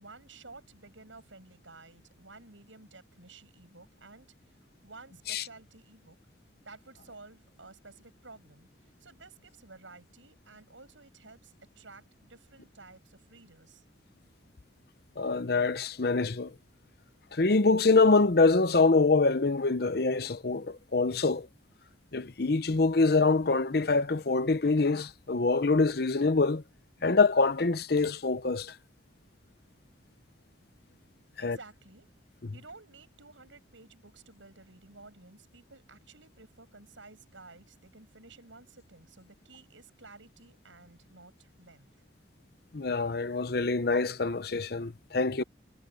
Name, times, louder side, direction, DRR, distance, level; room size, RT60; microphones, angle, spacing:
voice 1, 0.0-6.2 6.6-13.8 31.4-32.1 32.5-41.9, right 3 dB, 85° right, 7.9 m, -53 dB
voice 2, 15.2-16.5 17.3-21.5 22.1-26.6 27.0-28.7 31.4-31.6 32.4-32.5 42.7-45.4, left 3 dB, 55° left, 0.8 m, -25 dB
head